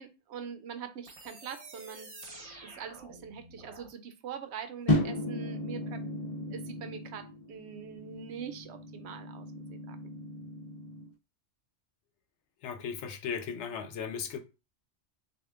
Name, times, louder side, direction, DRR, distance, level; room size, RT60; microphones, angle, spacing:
voice 1, 0.0-2.1 2.6-6.0 6.5-10.0, right 7 dB, 75° right, 0.9 m, -43 dB
sound 1, 1.0-3.9, right 2 dB, 30° right, 0.9 m, -49 dB
sound 2, 4.9-11.1, left 1 dB, 40° left, 1.3 m, -35 dB
voice 2, 12.6-14.4, left 6 dB, 85° left, 1.0 m, -36 dB
6.3 x 2.5 x 2.4 m
omnidirectional pair, 1.2 m